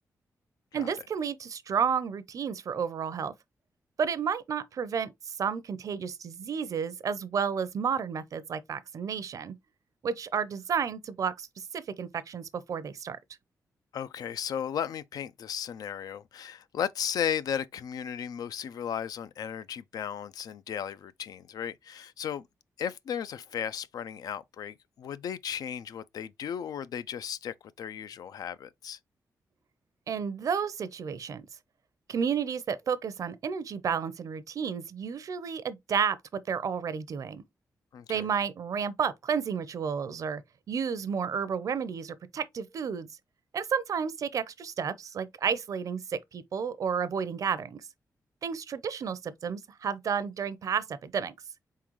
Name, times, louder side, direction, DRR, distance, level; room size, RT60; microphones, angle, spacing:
voice 1, 0.7-3.3 4.0-9.5 10.0-13.2 30.1-31.5 32.1-36.2 36.5-37.4 38.1-40.4 40.7-43.1 43.5-47.8 48.4-51.3, right 7 dB, 60° right, 0.5 m, -31 dB
voice 2, 13.9-22.4 22.8-29.0 37.9-38.3, left 8 dB, 80° left, 0.4 m, -35 dB
4.2 x 3.7 x 3.0 m
wide cardioid pair, 115°, 6 cm